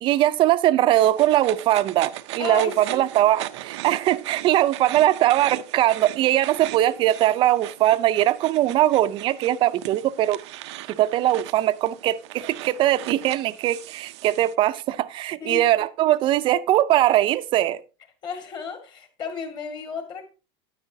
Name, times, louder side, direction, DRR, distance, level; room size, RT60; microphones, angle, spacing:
voice 1, 0.0-10.4 10.9-17.8, right 13 dB, 35° right, 0.5 m, -21 dB
sound 1, 1.0-14.5, right 15 dB, 85° right, 0.5 m, -38 dB
voice 2, 2.4-3.0 15.4-15.7 16.1-16.2 18.2-20.3, left 6 dB, 30° left, 1.9 m, -33 dB
9.7 x 9.6 x 2.7 m
supercardioid pair, 145°, 14 cm